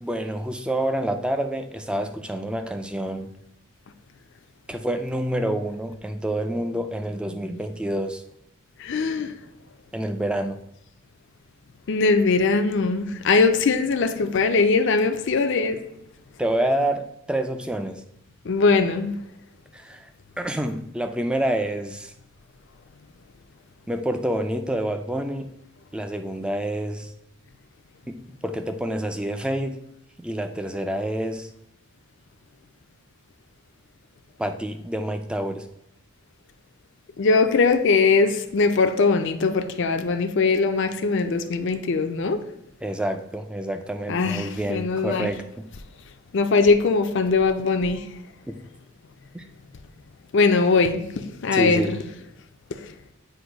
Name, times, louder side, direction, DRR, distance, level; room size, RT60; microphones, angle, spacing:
voice 1, 0.0-3.3 4.7-8.2 9.9-10.6 16.4-18.0 19.7-20.1 20.4-22.1 23.9-25.5 25.9-27.1 28.1-29.8 30.2-31.5 34.4-35.7 42.8-45.7 49.3-49.4 51.5-51.9, right 1 dB, 5° right, 7 dB, 0.3 m, -28 dB
voice 2, 8.8-9.3 11.9-15.8 18.5-19.2 37.2-42.4 44.1-45.3 46.3-48.1 50.3-51.0 51.4-52.0 52.7-52.8, left 4 dB, 55° left, 7 dB, 0.4 m, -21 dB
7.8 x 2.6 x 5.0 m, 0.81 s
head